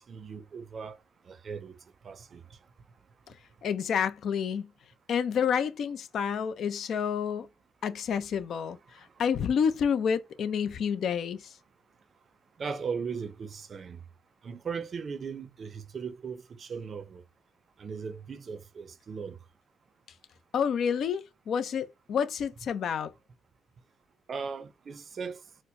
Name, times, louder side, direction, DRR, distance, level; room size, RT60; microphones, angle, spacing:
voice 1, 0.1-1.0 1.3-1.8 2.0-2.4 12.6-14.0 14.4-17.2 17.8-19.4 24.3-25.4, right 5 dB, 45° right, 0.5 m, -38 dB
voice 2, 3.6-4.7 5.1-7.5 7.8-8.8 9.2-11.4 20.5-23.1, left 7 dB, 65° left, 0.4 m, -29 dB
4.2 x 2.0 x 2.6 m
cardioid pair, 90°, 0 cm